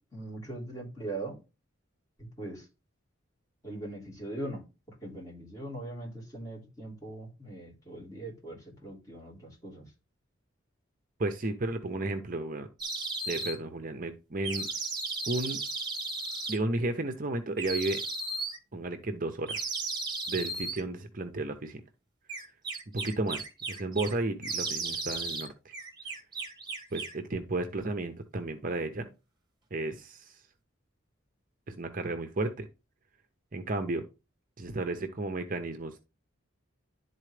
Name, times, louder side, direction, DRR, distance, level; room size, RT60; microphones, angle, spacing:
voice 1, 0.1-1.4 2.2-2.6 3.6-4.6 5.0-9.9, right 1 dB, 15° left, 3.8 m, -40 dB
voice 2, 11.2-12.7 13.3-14.7 15.3-15.6 16.5-18.0 18.7-19.6 20.3-21.8 22.9-25.7 26.9-29.1 29.7-30.4 31.7-32.7 33.5-34.1 34.6-36.0, right 2 dB, 40° right, 0.7 m, -33 dB
water bird whistle, 12.8-13.6 14.4-16.6 17.6-18.6 19.5-20.8 22.3-24.1 24.4-25.5 25.7-27.2, right 3 dB, 20° right, 1.6 m, -35 dB
11.0 x 4.2 x 3.3 m
head